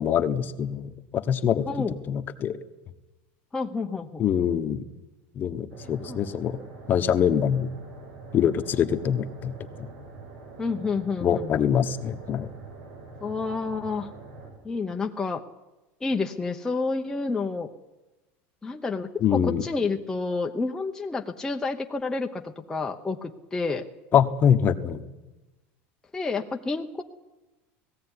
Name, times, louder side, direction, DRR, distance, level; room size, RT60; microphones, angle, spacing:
voice 1, 0.0-1.7 2.1-2.6 4.2-4.8 5.4-6.6 6.9-7.7 8.3-9.5 11.2-12.5 19.2-19.6 24.1-25.0, left 8 dB, 30° left, 9 dB, 1.1 m, -24 dB
voice 2, 1.7-2.0 3.5-4.2 5.8-6.2 10.6-11.7 13.2-14.1 14.6-15.4 16.0-17.7 18.6-23.9 26.1-27.0, left 4 dB, 10° left, 2 dB, 0.9 m, -29 dB
sound 1, 5.7-14.5, right 3 dB, 85° right, 7.2 m, -44 dB
19.0 x 15.5 x 9.9 m, 1.1 s
supercardioid pair, 150°, 6 cm